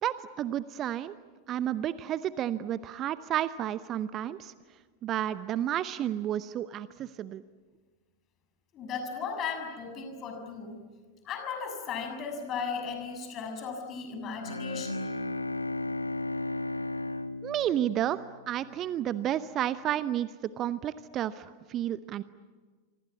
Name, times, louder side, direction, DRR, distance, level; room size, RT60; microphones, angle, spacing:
voice 1, 0.0-1.1 1.5-4.5 5.0-7.4 17.4-22.2, right 11 dB, 30° right, 16 dB, 0.8 m, -31 dB
voice 2, 8.7-10.8 11.2-15.1, left 5 dB, 30° left, 4 dB, 6.7 m, -36 dB
Bowed string instrument, 14.4-18.7, left 2 dB, 80° left, 1.0 m, -34 dB
27.0 x 25.0 x 8.5 m, 1.5 s
figure-of-eight pair, 90°, 0 cm